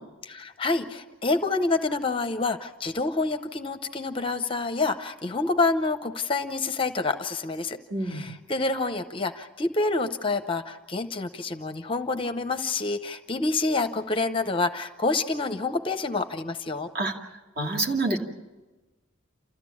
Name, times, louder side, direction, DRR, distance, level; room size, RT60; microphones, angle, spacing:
voice 1, 0.3-7.8 8.0-16.9, left 3 dB, 25° left, 9 dB, 0.7 m, -27 dB
voice 2, 7.9-8.2 16.9-17.1 17.6-18.2, right 2 dB, 45° right, 1 dB, 2.5 m, -26 dB
29.0 x 14.0 x 8.5 m, 1.2 s
head